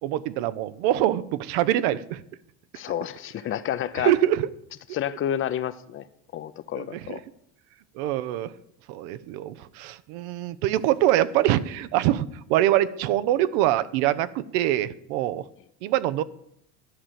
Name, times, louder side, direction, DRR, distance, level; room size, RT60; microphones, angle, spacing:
voice 1, 0.0-2.2 3.9-4.5 6.8-7.2 8.0-8.5 8.9-15.5 15.8-16.2, right 13 dB, 80° right, 15 dB, 0.7 m, -24 dB
voice 2, 2.7-4.1 4.9-6.1 6.3-7.2, left 10 dB, 40° left, 14 dB, 0.6 m, -30 dB
11.5 x 5.0 x 7.5 m, 0.76 s
supercardioid pair, 105°, 32 cm